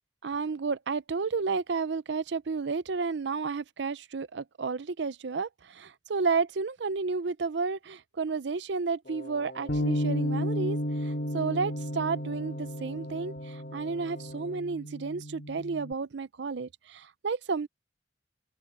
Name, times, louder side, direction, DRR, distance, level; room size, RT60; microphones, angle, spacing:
voice 1, 0.2-10.8 11.3-13.3 13.7-17.7, right 4 dB, 65° right, 0.6 m, -31 dB
Wind instrument woodwind instrument, 9.0-14.8, left 1 dB, 45° left, 6.8 m, -46 dB
Bass guitar, 9.7-15.9, equal, 65° left, 2.4 m, -33 dB
open air
head